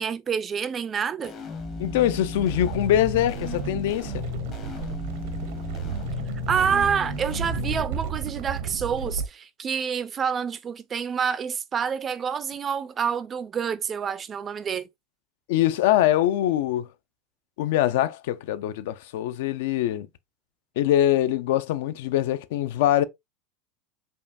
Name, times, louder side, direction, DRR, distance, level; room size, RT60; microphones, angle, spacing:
voice 1, 0.0-1.3 6.5-14.9, right 7 dB, 20° right, 0.3 m, -27 dB
sound 1, 1.2-7.8, left 8 dB, 30° left, 0.8 m, -35 dB
sound 2, 1.5-9.3, right 7 dB, 70° right, 0.6 m, -33 dB
voice 2, 1.8-4.3 15.5-16.9 17.6-20.1 20.8-23.0, left 12 dB, 75° left, 0.4 m, -23 dB
5.3 x 2.3 x 2.5 m
supercardioid pair, 160°, 0 cm